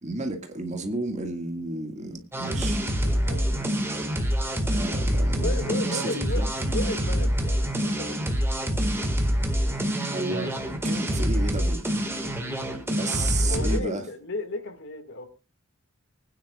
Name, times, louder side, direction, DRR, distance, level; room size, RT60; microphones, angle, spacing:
voice 1, 0.0-2.8 4.7-6.5 10.1-10.6 10.8-11.9 12.9-14.1, right 2 dB, 30° right, 2.0 m, -32 dB
sound 1, 2.3-13.8, equal, 10° right, 1.9 m, -26 dB
voice 2, 3.0-4.2 5.4-6.4 6.7-8.5 13.4-15.3, left 2 dB, 55° left, 2.1 m, -35 dB
24.5 x 9.7 x 2.4 m
head